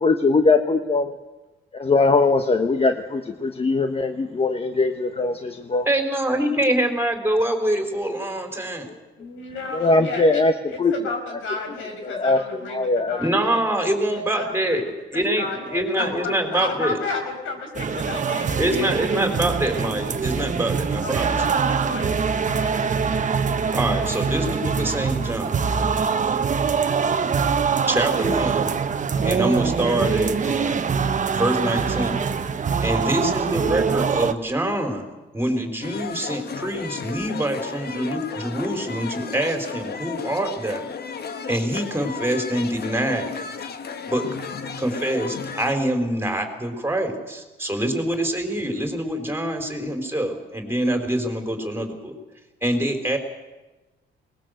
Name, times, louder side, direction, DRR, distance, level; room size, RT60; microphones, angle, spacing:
voice 1, 0.0-1.1 1.7-5.9 9.7-10.5 10.8-10.9 12.0-12.4 12.7-13.2, left 3 dB, 30° left, 7 dB, 1.2 m, -20 dB
voice 2, 5.9-8.9 13.2-14.8 15.1-17.0 18.6-21.4 23.7-25.5 27.9-28.7 29.2-30.9 31.3-32.2 32.8-35.1 35.3-40.9 41.5-43.3 44.1-44.3 44.8-52.2 52.6-53.2, right 1 dB, 10° right, 5 dB, 3.9 m, -25 dB
voice 3, 9.2-13.6 14.1-19.6 21.0-22.1 22.5-23.0, left 3 dB, 80° left, 3 dB, 5.7 m, -33 dB
sound 1, 17.7-34.3, right 6 dB, 40° right, 1.2 m, -23 dB
sound 2, 35.8-45.7, left 6 dB, 55° left, 1.5 m, -34 dB
21.5 x 19.5 x 7.9 m, 1.2 s
cardioid pair, 90°, 20 cm